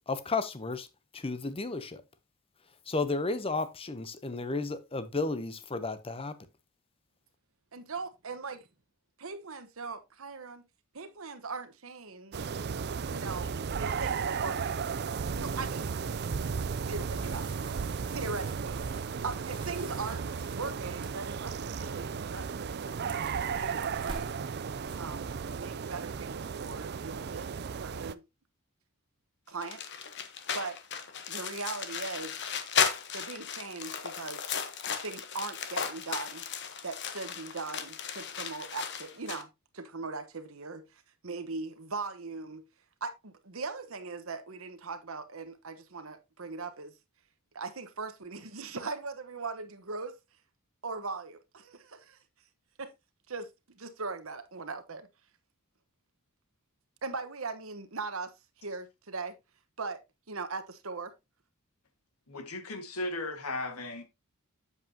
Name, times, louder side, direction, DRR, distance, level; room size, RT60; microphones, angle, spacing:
voice 1, 0.1-0.9 1.1-2.0 2.9-6.3, left 3 dB, 25° left, 0.7 m, -33 dB
voice 2, 7.7-8.7 9.2-10.6 10.9-12.4 13.1-14.7 15.3-16.0 16.9-17.5 18.1-18.8 19.2-23.0 23.5-24.4 25.0-27.5 27.8-28.2 29.5-29.8 30.5-30.8 31.3-32.4 33.1-34.5 35.0-36.4 36.8-42.6 43.0-46.9 47.5-50.1 50.8-52.2 52.8-52.9 53.3-55.1 57.0-58.3 58.6-59.4 59.8-60.0 60.3-61.1, right 4 dB, 65° right, 1.2 m, -40 dB
sound 1, 12.3-28.1, right 6 dB, 50° right, 0.4 m, -35 dB
sound 2, 17.2-21.5 21.9-22.3 22.6-25.0, right 2 dB, 25° right, 1.8 m, -49 dB
sound 3, 29.6-39.4, left 7 dB, 55° left, 1.1 m, -35 dB
voice 3, 62.3-64.0, left 2 dB, 90° left, 1.8 m, -36 dB
8.3 x 7.2 x 2.8 m
head